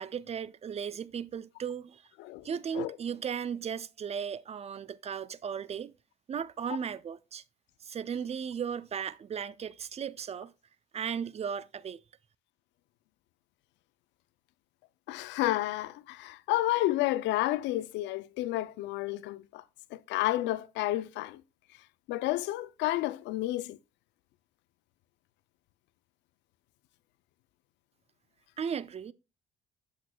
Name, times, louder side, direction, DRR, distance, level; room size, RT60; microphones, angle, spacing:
voice 1, 0.0-2.0 2.4-5.9 6.3-7.4 7.8-10.5 10.9-12.0 28.6-29.1, right 7 dB, 35° right, 0.4 m, -36 dB
voice 2, 15.1-19.6 19.9-21.4 22.1-23.8, left 16 dB, 85° left, 0.4 m, -31 dB
8.2 x 6.3 x 2.2 m
cardioid pair, 80°, 18 cm